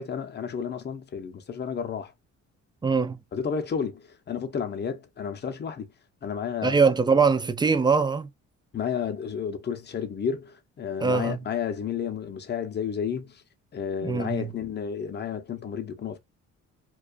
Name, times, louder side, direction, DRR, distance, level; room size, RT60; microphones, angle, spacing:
voice 1, 0.0-2.1 3.3-5.9 6.2-6.8 8.7-13.4 13.7-16.2, left 7 dB, 35° left, 0.6 m, -31 dB
voice 2, 2.8-3.2 6.6-8.3 11.0-11.4 14.0-14.5, right 5 dB, 15° right, 0.3 m, -22 dB
2.4 x 2.3 x 2.3 m
cardioid pair, 90°, 30 cm